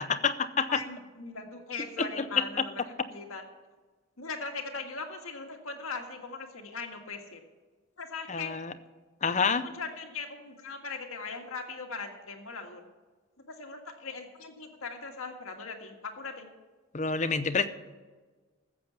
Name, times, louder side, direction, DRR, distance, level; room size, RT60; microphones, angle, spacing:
voice 1, 0.0-0.8 2.0-2.7 8.3-8.7 9.2-9.7 16.9-17.7, left 5 dB, 35° left, 12 dB, 0.6 m, -28 dB
voice 2, 0.7-3.4 4.2-7.4 8.0-8.6 9.6-12.8 13.5-16.5, left 4 dB, 85° left, 3 dB, 1.8 m, -40 dB
14.0 x 7.9 x 7.0 m, 1.3 s
head